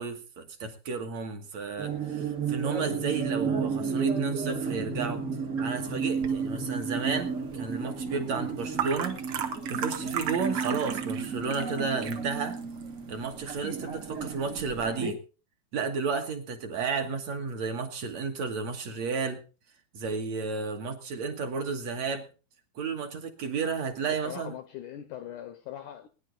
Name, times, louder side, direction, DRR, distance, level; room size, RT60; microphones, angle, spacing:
voice 1, 0.0-5.3 5.6-9.2 9.7-12.6 13.1-15.2 15.7-19.4 19.9-22.3 22.8-24.6, right 5 dB, 55° right, 2.3 m, -32 dB
sound 1, 1.8-15.1, right 5 dB, 40° right, 1.1 m, -32 dB
sound 2, 6.2-14.9, right 8 dB, 75° right, 1.2 m, -38 dB
voice 2, 24.0-26.1, left 11 dB, 75° left, 1.9 m, -41 dB
20.0 x 10.5 x 3.9 m
omnidirectional pair, 4.4 m